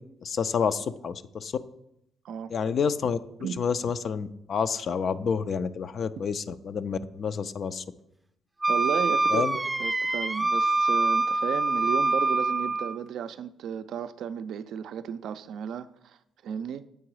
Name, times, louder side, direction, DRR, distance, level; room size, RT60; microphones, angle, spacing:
voice 1, 0.2-1.5 2.5-3.2 3.6-7.8 9.3-9.6, left 6 dB, 55° left, 0.4 m, -29 dB
Wind instrument woodwind instrument, 8.6-13.0, right 2 dB, 15° right, 0.4 m, -25 dB
voice 2, 8.7-16.8, right 8 dB, 75° right, 0.3 m, -34 dB
8.2 x 3.8 x 4.7 m
cardioid pair, 90°, 0 cm